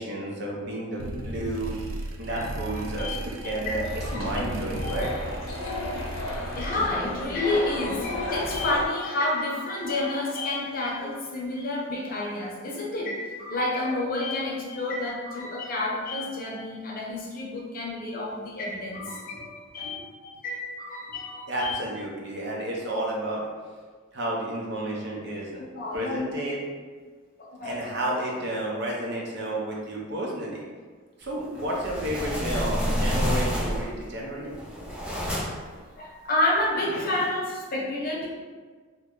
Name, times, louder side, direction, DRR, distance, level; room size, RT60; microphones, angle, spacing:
voice 1, 0.0-1.7 2.2-3.9 4.1-5.1 5.4-5.5 5.9-6.2 19.2-19.4 19.8-20.0 21.5-23.5 24.1-25.6 25.9-26.6 27.6-30.6 31.2-34.5 35.3-35.4, right 1 dB, 55° right, -3 dB, 0.7 m, -31 dB
sound 1, 1.0-7.1, right 1 dB, 90° right, 0.4 m, -35 dB
sound 2, 3.8-8.9, left 1 dB, 85° left, 0.8 m, -33 dB
voice 2, 6.6-21.8 25.6-26.4 27.4-27.9 36.0-38.3, left 2 dB, 45° left, -3 dB, 0.6 m, -29 dB
sound 3, 31.5-34.0 34.5-35.7, equal, 5° right, 0.6 m, -28 dB
3.0 x 2.2 x 3.6 m, 1.5 s
head